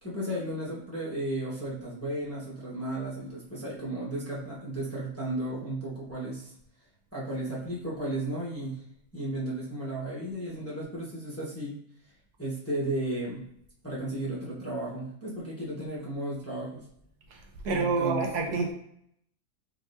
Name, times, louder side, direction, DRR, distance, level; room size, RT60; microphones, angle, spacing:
voice 1, 0.0-6.5 7.1-8.8 9.1-11.8 12.4-13.4 13.8-16.9 17.7-18.6, right 1 dB, 10° left, -7 dB, 0.9 m, -34 dB
voice 2, 17.6-18.7, right 4 dB, 75° right, 1 dB, 1.3 m, -27 dB
4.5 x 4.0 x 2.6 m, 0.70 s
omnidirectional pair, 1.7 m